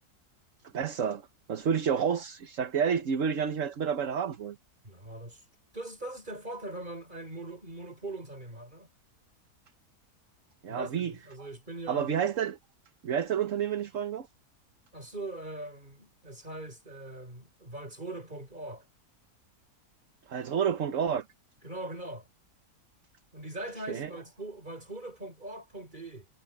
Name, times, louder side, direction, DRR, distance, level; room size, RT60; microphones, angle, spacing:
voice 1, 0.7-4.6 10.6-11.1 11.9-12.6 13.0-14.3 20.3-21.2 23.9-24.1, right 7 dB, 55° right, 1.4 m, -29 dB
voice 2, 4.8-5.4 5.7-8.9 10.7-12.1 14.9-18.9 21.6-22.3 23.3-26.3, right 2 dB, 30° right, 5.3 m, -41 dB
omnidirectional pair, 1.6 m